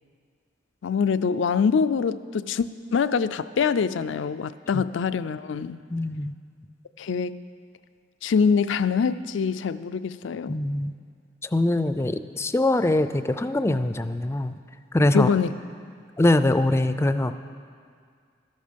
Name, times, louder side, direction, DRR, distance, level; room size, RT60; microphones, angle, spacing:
voice 1, 0.8-5.8 7.0-7.4 8.2-10.6 15.1-15.5, left 6 dB, 80° left, 14 dB, 0.4 m, -24 dB
voice 2, 5.9-6.3 10.5-10.9 11.4-14.5 14.9-15.3 16.2-17.4, left 1 dB, 15° left, 11 dB, 0.4 m, -23 dB
13.0 x 12.0 x 5.2 m, 2.1 s
head